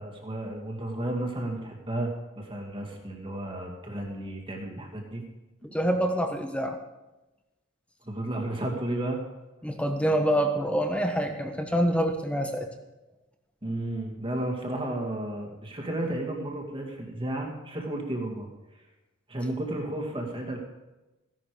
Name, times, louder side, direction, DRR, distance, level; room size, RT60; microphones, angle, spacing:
voice 1, 0.0-2.1 2.4-5.2 8.1-9.2 13.6-18.5 19.3-20.6, right 1 dB, 25° right, 1 dB, 2.3 m, -33 dB
voice 2, 5.7-6.8 9.6-12.7, equal, 5° left, 5 dB, 1.2 m, -26 dB
16.0 x 11.0 x 5.0 m, 1.0 s
head